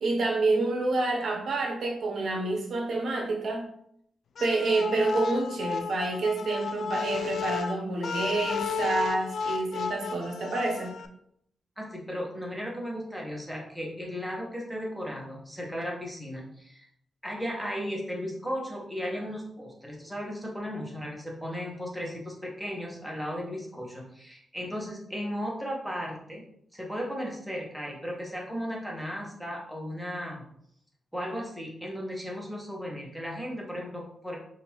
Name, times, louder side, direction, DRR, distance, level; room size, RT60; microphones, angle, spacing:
voice 1, 0.0-3.7 4.4-10.9, right 2 dB, 60° right, 2 dB, 0.8 m, -28 dB
sound 1, 4.4-11.1, left 5 dB, 65° left, 0.3 m, -33 dB
voice 2, 11.8-16.9 17.2-26.4 26.7-30.4 31.1-34.4, equal, ahead, -2 dB, 1.0 m, -35 dB
3.7 x 2.5 x 4.4 m, 0.71 s
wide cardioid pair, 130°, 0 cm